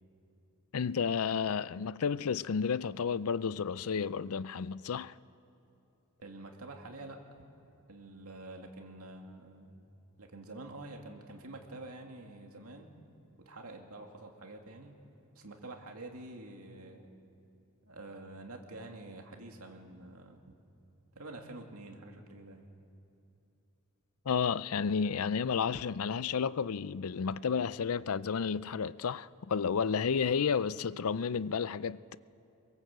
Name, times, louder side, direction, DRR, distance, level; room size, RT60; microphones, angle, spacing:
voice 1, 0.7-5.1 24.3-32.2, left 6 dB, 70° left, 0.5 m, -31 dB
voice 2, 6.2-7.2 7.9-9.8 10.2-12.9 13.4-15.0 15.3-17.1 17.9-20.4 21.1-22.6, right 2 dB, 75° right, 2.6 m, -47 dB
24.5 x 22.5 x 7.9 m
head